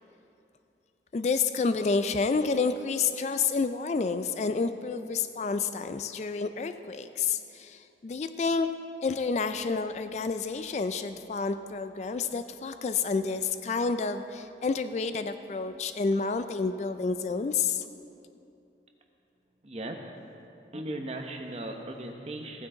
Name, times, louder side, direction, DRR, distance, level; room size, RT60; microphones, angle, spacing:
voice 1, 1.1-8.7 9.0-17.9, left 4 dB, 40° left, 10 dB, 0.3 m, -29 dB
voice 2, 19.6-20.0 20.7-22.7, right 1 dB, 35° right, 3 dB, 0.9 m, -37 dB
15.0 x 9.7 x 3.8 m, 2.8 s
head